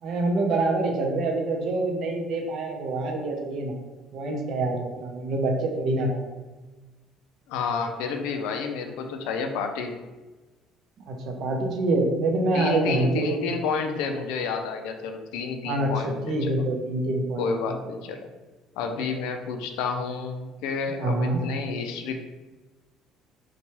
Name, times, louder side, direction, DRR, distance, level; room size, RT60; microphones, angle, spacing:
voice 1, 0.0-3.7 4.1-6.2 11.1-13.5 15.6-17.5 20.9-21.4, right 2 dB, 60° right, 2 dB, 0.5 m, -26 dB
voice 2, 7.5-10.0 12.5-16.5 17.4-18.3 18.8-22.1, left 5 dB, 90° left, 5 dB, 0.3 m, -30 dB
2.9 x 2.2 x 2.8 m, 1.2 s
cardioid pair, 110°, 0 cm